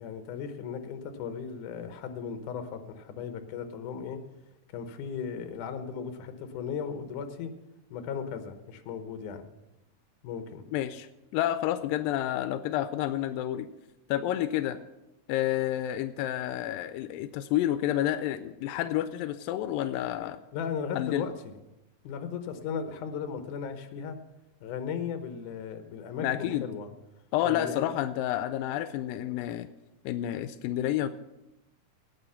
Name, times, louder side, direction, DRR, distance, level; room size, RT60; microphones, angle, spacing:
voice 1, 0.0-4.2 4.7-7.5 7.9-9.5 10.2-10.6 20.5-21.6 22.0-24.2 24.6-26.9 27.4-27.9, left 6 dB, 70° left, 8 dB, 2.4 m, -36 dB
voice 2, 10.7-11.1 11.3-13.7 14.1-14.8 15.3-20.4 21.0-21.3 26.2-26.6 27.3-29.7 30.1-31.2, left 12 dB, 90° left, 11 dB, 2.3 m, -29 dB
18.0 x 6.7 x 5.7 m, 0.95 s
omnidirectional pair, 3.9 m